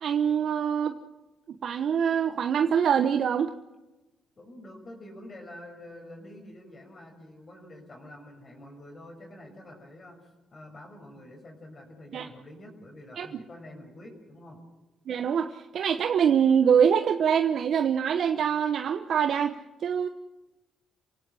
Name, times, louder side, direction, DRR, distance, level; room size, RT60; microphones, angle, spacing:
voice 1, 0.0-0.9 1.6-3.5 12.1-12.3 13.2-13.3 15.1-20.1, right 8 dB, 65° right, 8 dB, 1.0 m, -24 dB
voice 2, 4.4-14.6, left 1 dB, 35° left, 2 dB, 6.2 m, -47 dB
27.5 x 17.0 x 7.6 m, 1.1 s
cardioid pair, 90°, 0 cm